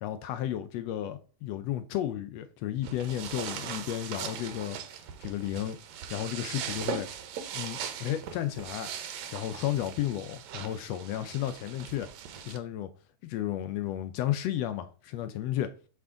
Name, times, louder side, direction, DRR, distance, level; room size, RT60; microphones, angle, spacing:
voice 1, 0.0-4.8 5.2-5.8 6.1-7.1 7.5-8.9 9.3-12.1 12.4-12.9 13.2-15.7, left 12 dB, 80° left, 1.5 m, -33 dB
sound 1, 2.8-12.6, right 8 dB, 70° right, 2.0 m, -40 dB
5.9 x 5.8 x 3.7 m
omnidirectional pair, 3.5 m